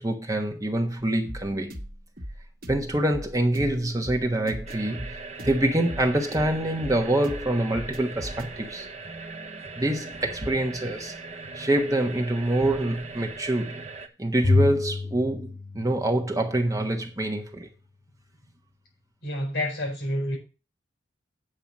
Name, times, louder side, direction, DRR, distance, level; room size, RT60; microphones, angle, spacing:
voice 1, 0.0-1.8 2.7-8.9 9.8-11.1 11.5-13.8 14.2-17.7, right 1 dB, 20° right, 1.2 m, -26 dB
sound 1, 1.2-8.5, equal, 50° right, 1.5 m, -39 dB
sound 2, 4.7-14.1, right 3 dB, 35° right, 1.0 m, -39 dB
Bowed string instrument, 14.4-16.8, left 3 dB, 90° left, 1.8 m, -27 dB
voice 2, 19.2-20.4, left 1 dB, 60° left, 6.7 m, -28 dB
8.8 x 4.9 x 7.2 m
head